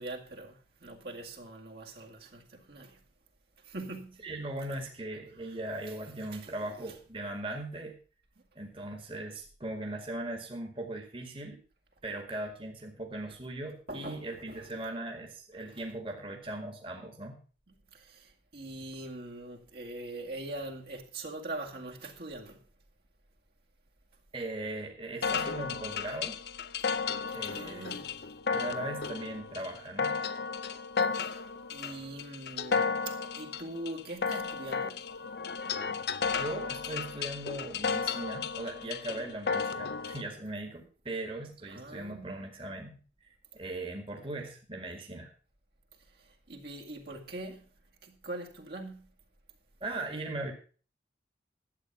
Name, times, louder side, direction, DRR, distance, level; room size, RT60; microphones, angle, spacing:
voice 1, 0.0-3.0 3.7-4.2 5.5-5.6 6.3-6.5 13.9-14.2 14.5-14.7 17.9-22.7 27.3-28.3 31.1-31.4 31.7-35.2 41.7-42.4 46.2-47.7 48.0-49.1, right 2 dB, 55° right, 2.1 m, -43 dB
voice 2, 4.2-8.0 8.6-11.6 12.0-17.4 24.3-26.4 27.3-28.0 28.5-30.2 36.4-45.3 49.8-50.5, right 1 dB, 30° right, 1.7 m, -39 dB
sound 1, 25.2-40.2, left 5 dB, 60° left, 0.6 m, -34 dB
11.5 x 8.5 x 6.0 m
head